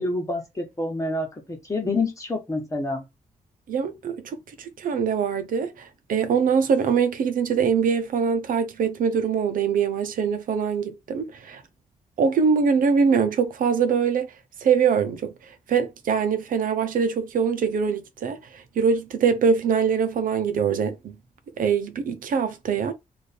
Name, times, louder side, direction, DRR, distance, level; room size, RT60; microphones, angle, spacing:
voice 1, 0.0-3.0, left 2 dB, 25° left, 1.3 m, -28 dB
voice 2, 3.7-11.6 12.2-14.3 14.6-15.3 15.7-21.1 21.6-22.9, right 6 dB, 85° right, 0.7 m, -23 dB
3.3 x 2.6 x 4.2 m
wide cardioid pair, 135°, 14 cm